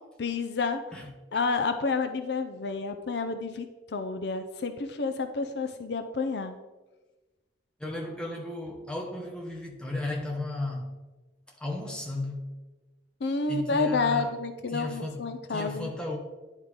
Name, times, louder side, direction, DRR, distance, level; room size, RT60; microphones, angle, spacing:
voice 1, 0.2-0.8 1.3-3.7 3.9-6.6 13.2-15.9, left 4 dB, 60° left, 0.5 m, -29 dB
voice 2, 7.8-10.9 11.6-12.5 13.5-14.3 14.7-16.2, left 2 dB, 5° left, 1.1 m, -34 dB
10.0 x 3.7 x 4.8 m
head